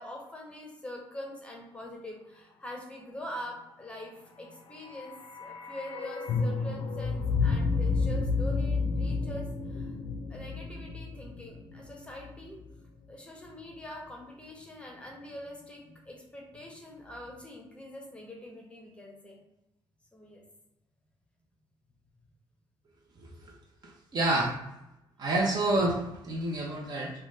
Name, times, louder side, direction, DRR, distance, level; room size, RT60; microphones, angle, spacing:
voice 1, 0.0-5.1 5.4-10.0 10.3-12.6 13.1-19.4 20.1-20.4, left 1 dB, 10° left, -1 dB, 0.7 m, -44 dB
sound 1, 4.6-12.7 13.0-13.1, left 4 dB, 70° left, 0.4 m, -31 dB
voice 2, 23.2-23.5 23.8-24.5 25.2-27.1, right 2 dB, 50° right, 0 dB, 0.6 m, -29 dB
2.4 x 2.2 x 3.1 m, 0.91 s
cardioid pair, 100°, 9 cm